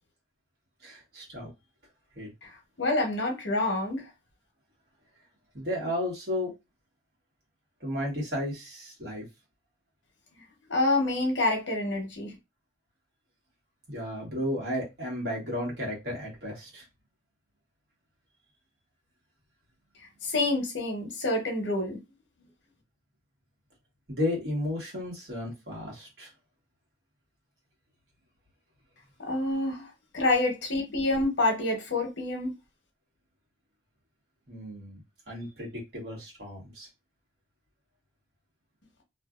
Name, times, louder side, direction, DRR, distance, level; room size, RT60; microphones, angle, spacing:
voice 1, 0.8-1.5 2.1-2.3 5.5-6.5 7.8-9.2 13.9-16.8 24.1-26.3 34.5-35.0 35.3-36.9, left 1 dB, 60° right, 1.3 m, -33 dB
voice 2, 2.4-4.1 10.7-12.4 20.2-22.0 29.3-32.5, left 2 dB, 80° left, 1.0 m, -27 dB
2.7 x 2.4 x 2.4 m
head